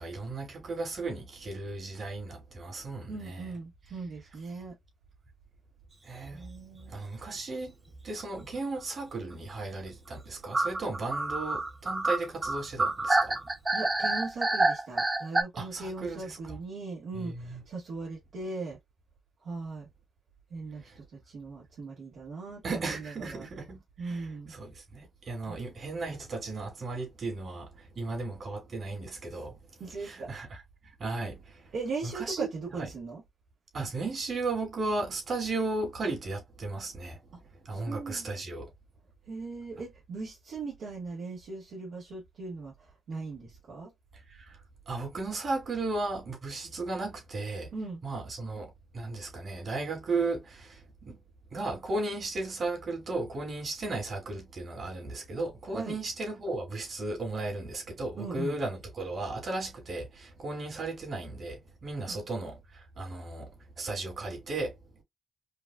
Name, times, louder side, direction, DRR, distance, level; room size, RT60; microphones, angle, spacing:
voice 1, 0.0-3.5 6.0-6.5 6.9-7.7 8.0-13.4 15.5-16.6 17.1-17.6 20.7-21.1 22.6-31.7 32.0-32.5 32.7-32.9 33.7-38.7 44.1-44.6 44.9-47.7 48.0-51.2 51.5-65.0, right 3 dB, 60° right, 2.7 m, -35 dB
voice 2, 3.1-4.8 6.3-7.0 13.7-18.8 19.4-19.9 20.5-23.5 24.0-24.5 25.5-25.6 29.8-30.3 31.7-33.2 37.7-38.3 39.3-43.9 47.7-48.0 55.7-56.0 58.2-58.6 62.1-62.2, right 3 dB, 85° right, 1.4 m, -39 dB
sound 1, 6.2-6.5 6.8-6.9 7.2-7.3 8.2-8.4 10.5-15.4, right 2 dB, 30° right, 0.9 m, -28 dB
5.0 x 2.4 x 2.4 m
cardioid pair, 65°, 0 cm